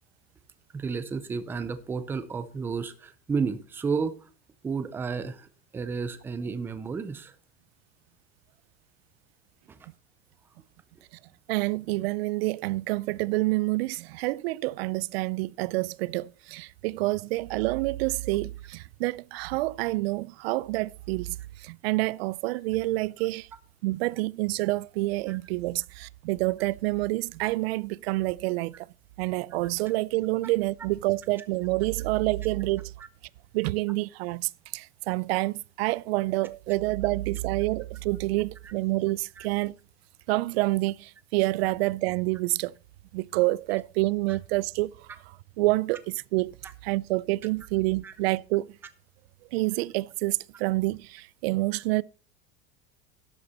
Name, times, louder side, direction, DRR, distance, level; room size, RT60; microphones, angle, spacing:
voice 1, 0.7-4.3 4.6-7.3 9.7-9.8 25.3-25.4 39.4-39.5 44.3-44.4 48.0-48.1, right 5 dB, 5° right, 0.4 m, -32 dB
voice 2, 11.5-23.5 23.8-28.9 29.2-32.9 33.5-39.8 40.3-42.7 43.1-46.6 46.8-48.7 49.5-52.0, right 20 dB, 90° right, 0.5 m, -28 dB
12.0 x 7.9 x 4.2 m
supercardioid pair, 175°, 30 cm